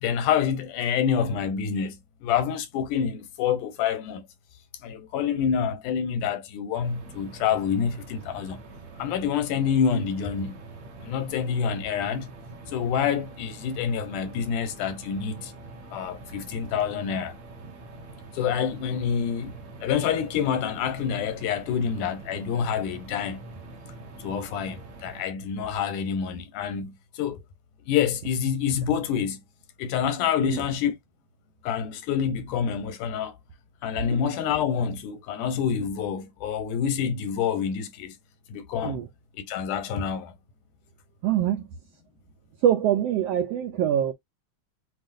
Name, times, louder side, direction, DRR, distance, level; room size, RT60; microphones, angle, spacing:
voice 1, 0.0-4.3 4.8-8.6 9.0-10.6 11.0-12.3 12.7-15.5 15.9-17.3 18.3-23.4 24.2-27.4 27.9-29.4 29.8-31.0 31.6-33.3 33.8-38.1 38.5-39.0 39.4-40.3, left 7 dB, 90° left, 2.4 m, -27 dB
sound 1, 6.8-25.2, right 3 dB, 65° right, 2.6 m, -44 dB
voice 2, 41.2-41.7 42.6-44.1, right 10 dB, 85° right, 1.4 m, -24 dB
7.7 x 2.6 x 2.6 m
omnidirectional pair, 3.5 m